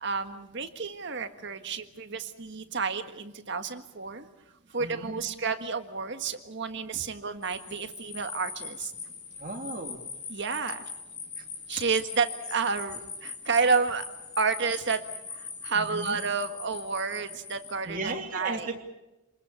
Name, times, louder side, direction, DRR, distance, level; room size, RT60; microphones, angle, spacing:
voice 1, 0.0-4.3 4.7-8.9 10.3-10.8 11.7-14.0 14.4-15.0 15.3-18.7, right 5 dB, 55° right, 8 dB, 1.6 m, -30 dB
voice 2, 4.8-5.2 9.4-10.0 15.7-16.2 17.8-18.8, right 2 dB, 35° right, 2 dB, 3.1 m, -36 dB
sound 1, 7.4-17.7, left 5 dB, 35° left, 6.3 m, -41 dB
28.0 x 21.0 x 7.1 m, 0.99 s
head